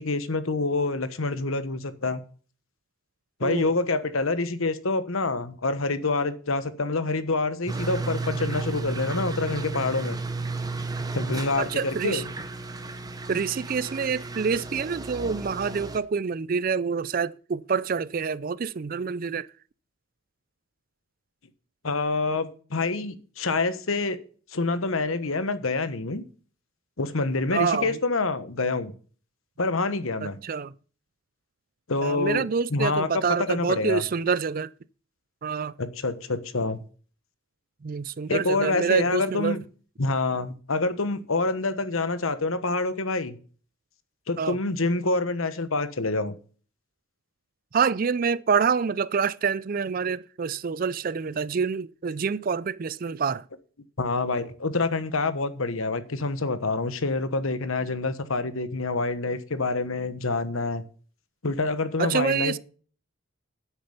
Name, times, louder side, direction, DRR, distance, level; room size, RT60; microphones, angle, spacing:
voice 1, 0.0-2.2 3.4-10.2 11.1-12.3 21.8-24.2 24.5-26.2 27.0-28.9 29.6-30.4 31.9-33.1 33.4-34.0 35.8-36.8 38.3-39.6 40.0-43.4 44.3-46.3 54.0-60.8 61.4-62.6, left 3 dB, 80° left, 1.2 m, -27 dB
sound 1, 7.7-16.0, right 3 dB, 20° right, 0.9 m, -33 dB
voice 2, 11.6-12.2 13.3-19.5 27.5-28.0 30.2-30.7 32.0-34.7 35.4-35.7 37.8-39.6 44.4-44.6 47.7-53.5 62.0-62.6, right 6 dB, 40° right, 0.4 m, -27 dB
9.8 x 8.1 x 5.6 m
head